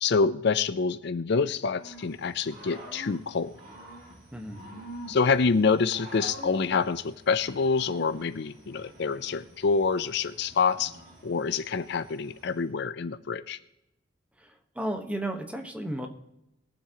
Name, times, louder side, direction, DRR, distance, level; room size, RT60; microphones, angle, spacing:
voice 1, 0.0-3.5 5.1-10.9 11.2-13.6, left 5 dB, 60° left, 13 dB, 0.5 m, -26 dB
Growling / Cricket, 1.7-12.6, right 1 dB, 45° right, 2.6 m, -47 dB
voice 2, 4.3-4.7 14.4-16.1, right 1 dB, 5° right, 5 dB, 1.2 m, -34 dB
22.0 x 7.5 x 2.9 m, 0.86 s
head